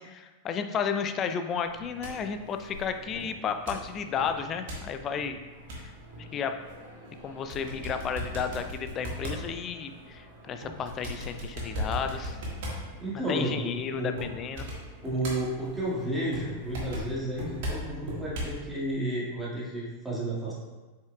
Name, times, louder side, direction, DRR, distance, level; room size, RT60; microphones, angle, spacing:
voice 1, 0.0-5.4 5.8-5.9 6.2-6.6 7.2-12.4 13.3-14.7, left 6 dB, 30° left, 8 dB, 0.4 m, -32 dB
sound 1, 1.6-18.6, equal, 50° right, 1.7 m, -39 dB
voice 2, 13.0-14.2 15.0-20.5, right 1 dB, 5° right, -7 dB, 2.0 m, -32 dB
7.6 x 5.6 x 2.4 m, 1.2 s
figure-of-eight pair, 90°, 0 cm